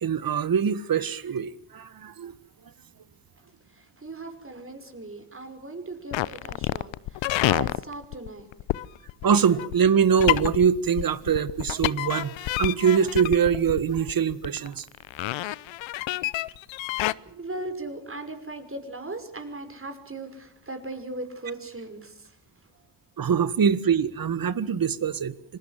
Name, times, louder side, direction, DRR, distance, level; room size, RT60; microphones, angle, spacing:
voice 1, 0.0-2.3 9.2-14.9 23.2-25.6, right 7 dB, 45° right, 16 dB, 1.7 m, -23 dB
voice 2, 3.8-8.5 17.4-22.3, right 2 dB, 25° right, 7 dB, 5.9 m, -38 dB
sound 1, 6.1-17.1, left 16 dB, 70° left, 0.9 m, -28 dB
26.5 x 20.0 x 7.6 m, 0.74 s
hypercardioid pair, 50°, 47 cm